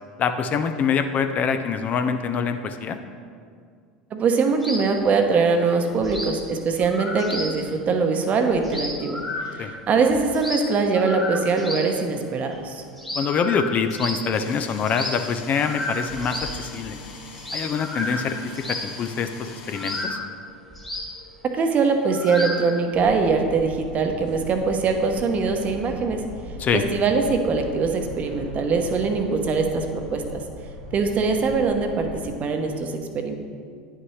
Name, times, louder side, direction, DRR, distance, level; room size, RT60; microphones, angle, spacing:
voice 1, 0.2-3.0 9.6-9.7 13.2-17.0 17.5-20.2 26.6-26.9, left 6 dB, 40° left, 8 dB, 0.5 m, -25 dB
voice 2, 4.1-9.2 9.5-12.8 21.5-26.2 26.7-30.4 30.9-33.3, right 4 dB, 40° right, 5 dB, 0.9 m, -22 dB
sound 1, 4.6-4.9 5.2-5.4 5.7-5.8 6.0-6.4 6.8-7.6 7.9-8.0 8.1-8.2 8.5-9.8 10.1-11.9 12.3-12.6 13.0-14.3 14.9-15.2 15.5-17.1 17.4-19.1 19.7-22.8, left 1 dB, 5° left, 1.6 m, -32 dB
sound 2, 14.3-20.0, left 4 dB, 65° left, 1.3 m, -42 dB
sound 3, 22.9-32.3, left 1 dB, 80° right, 1.3 m, -39 dB
9.5 x 5.6 x 3.2 m, 2.1 s
hypercardioid pair, 80°, 4 cm